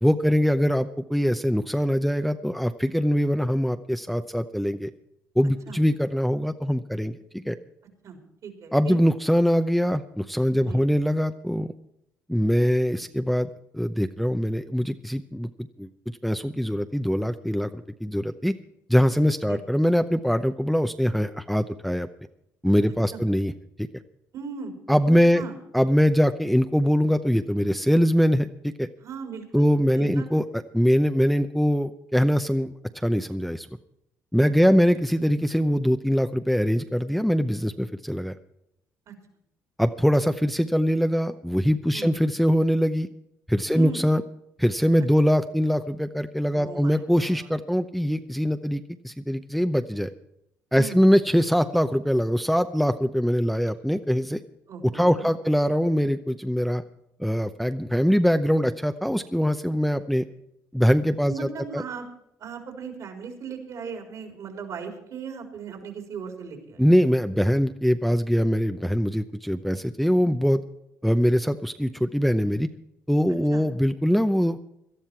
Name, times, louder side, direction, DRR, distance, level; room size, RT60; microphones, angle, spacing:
voice 1, 0.0-4.9 5.4-7.6 8.7-11.7 12.3-13.5 13.7-15.9 16.2-18.5 18.9-22.1 22.6-23.5 23.8-23.9 24.9-25.4 25.7-28.9 29.5-30.4 30.7-33.7 34.3-38.4 39.8-43.1 43.5-44.2 44.6-50.1 50.7-54.4 54.9-56.8 57.2-60.2 60.7-61.3 61.7-61.8 66.8-70.6 71.0-72.7 73.1-74.6, equal, ahead, 8 dB, 0.7 m, -22 dB
voice 2, 8.0-9.0 10.6-10.9 19.5-19.6 22.9-23.2 24.3-24.7 25.0-25.6 29.0-29.7 29.9-30.4 34.4-34.8 39.1-39.2 41.9-42.1 43.7-44.0 45.0-45.1 46.5-47.5 50.7-51.0 54.7-55.3 61.3-62.1 62.4-66.8 73.5-73.7, right 6 dB, 65° right, 3 dB, 4.0 m, -38 dB
18.0 x 12.5 x 4.6 m, 0.80 s
supercardioid pair, 80°, 6 cm